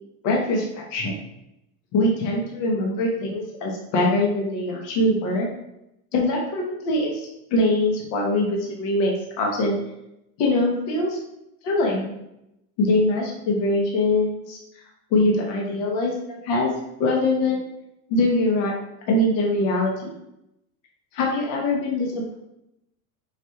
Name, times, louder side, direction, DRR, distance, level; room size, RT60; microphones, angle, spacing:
voice 1, 0.2-1.1 1.9-5.5 6.1-7.2 7.5-9.8 10.4-11.2 11.6-12.1 12.8-14.6 15.1-16.7 17.0-17.7 18.1-18.7 19.1-20.1 21.1-22.4, left 2 dB, 55° left, -1 dB, 1.1 m, -23 dB
5.0 x 2.5 x 2.8 m, 0.83 s
supercardioid pair, 115°, 43 cm